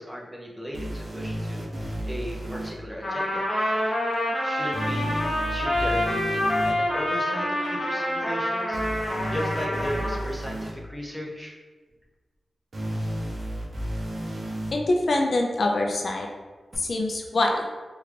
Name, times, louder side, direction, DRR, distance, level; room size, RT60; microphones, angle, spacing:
voice 1, 0.0-1.6 2.0-3.5 4.4-8.8 9.3-11.5, equal, 5° right, -2 dB, 0.5 m, -36 dB
sound 1, 0.7-2.7 4.7-6.7 8.7-10.7 12.7-14.7 16.7-16.8, equal, 45° right, 0.6 m, -32 dB
Trumpet, 3.0-10.2, left 1 dB, 20° left, 0.8 m, -27 dB
voice 2, 14.7-16.3 16.8-17.6, left 2 dB, 55° left, 2 dB, 0.3 m, -24 dB
3.4 x 2.3 x 3.2 m, 1.3 s
wide cardioid pair, 120°, 0 cm